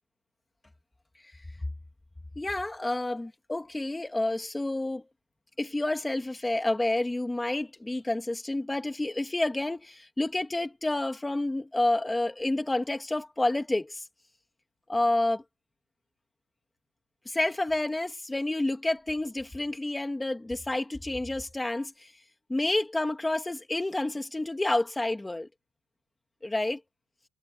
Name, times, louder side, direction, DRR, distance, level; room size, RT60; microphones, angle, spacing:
voice 1, 2.4-5.0 5.6-14.0 14.9-15.4 17.3-22.1 22.5-25.5 26.4-26.8, left 2 dB, 5° left, 2.1 m, -29 dB
cardioid pair, 165°, 0 cm